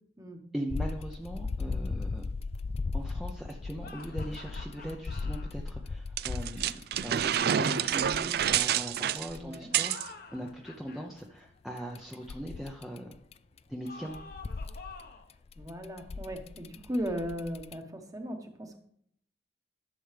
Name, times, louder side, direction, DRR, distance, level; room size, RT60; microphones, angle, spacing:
voice 1, 0.5-2.2 2.9-6.7 7.0-13.2 13.7-14.2, equal, ahead, 0 dB, 0.7 m, -40 dB
sound 1, 0.7-9.6 11.8-13.6 13.9-17.7, left 3 dB, 35° left, 0.3 m, -37 dB
sound 2, 3.8-5.5 9.6-11.1 13.8-15.3, left 4 dB, 55° left, 1.1 m, -48 dB
sound 3, 6.2-10.1, right 9 dB, 60° right, 0.4 m, -28 dB
voice 2, 9.4-9.7 15.6-18.8, equal, 20° right, 4 dB, 1.2 m, -37 dB
11.5 x 7.0 x 3.4 m, 0.67 s
head